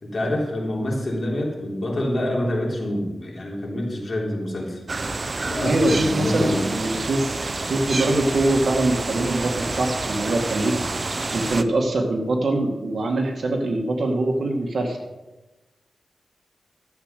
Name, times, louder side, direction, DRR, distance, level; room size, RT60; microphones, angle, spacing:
voice 1, 0.0-4.8 5.5-6.7, left 1 dB, 50° left, -2 dB, 3.5 m, -26 dB
sound 1, 4.9-11.6, right 3 dB, 40° right, 0.7 m, -28 dB
voice 2, 5.6-7.3 7.7-10.8 11.3-15.0, right 2 dB, 70° right, 2 dB, 2.1 m, -23 dB
13.0 x 7.6 x 6.7 m, 1.1 s
wide cardioid pair, 100°, 0 cm